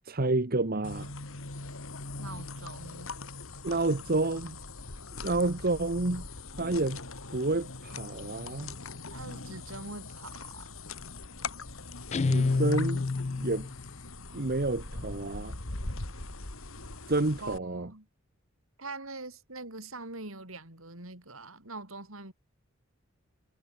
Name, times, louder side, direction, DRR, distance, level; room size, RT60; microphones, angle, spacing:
voice 1, 0.0-1.1 3.6-4.6 5.2-6.2 6.6-7.0 7.3-8.7 12.3-13.0 13.4-13.7 14.3-15.5 17.1-17.9, right 2 dB, 45° right, 1.4 m, -29 dB
sound 1, 0.8-17.6, left 3 dB, 75° left, 3.0 m, -41 dB
voice 2, 2.2-3.1 9.1-10.7 17.4-18.1 18.8-22.3, right 2 dB, 75° right, 7.1 m, -43 dB
Guitar, 12.1-13.8, left 3 dB, 35° left, 0.4 m, -28 dB
head